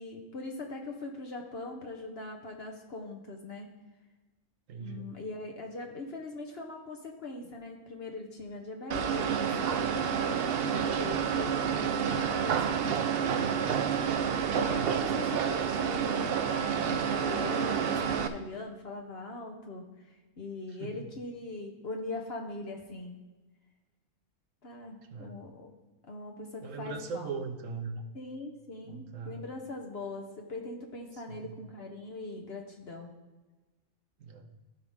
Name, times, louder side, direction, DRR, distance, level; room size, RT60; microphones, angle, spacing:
voice 1, 0.0-3.7 4.8-13.8 14.5-23.1 24.6-25.7 26.1-27.3 28.1-33.1, left 2 dB, 55° left, 2 dB, 1.1 m, -41 dB
voice 2, 4.7-5.1 14.6-15.0 20.7-21.0 25.1-25.5 26.6-28.0 28.8-29.5 31.1-31.6 34.2-34.6, right 5 dB, 80° right, 5 dB, 1.2 m, -40 dB
sound 1, 8.9-18.3, right 7 dB, 60° right, 0.7 m, -29 dB
15.0 x 5.4 x 3.6 m, 1.2 s
omnidirectional pair, 1.3 m